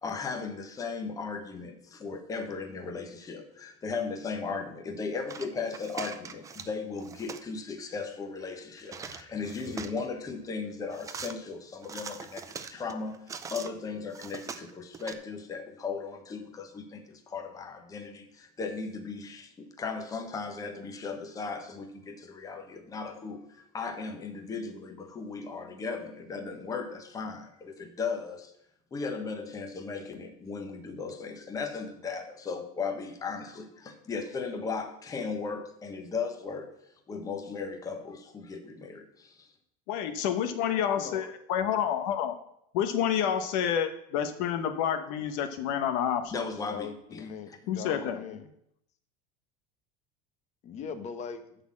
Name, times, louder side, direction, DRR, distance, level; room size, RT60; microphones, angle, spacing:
voice 1, 0.0-28.5 28.9-36.7 37.1-39.5 46.3-47.2, left 4 dB, 15° left, 4 dB, 1.2 m, -37 dB
sound 1, 5.3-6.7 7.0-7.5 8.8-10.1 10.9-11.3 11.8-13.7 14.1-15.1, right 6 dB, 15° right, 0.5 m, -42 dB
voice 2, 39.9-42.3 42.7-46.3 47.7-48.2, left 9 dB, 65° left, 8 dB, 1.0 m, -29 dB
voice 3, 40.9-41.3 46.7-48.5 50.7-51.6, left 7 dB, 35° left, 8 dB, 1.1 m, -40 dB
11.5 x 4.1 x 7.5 m, 0.74 s
cardioid pair, 150°, 20 cm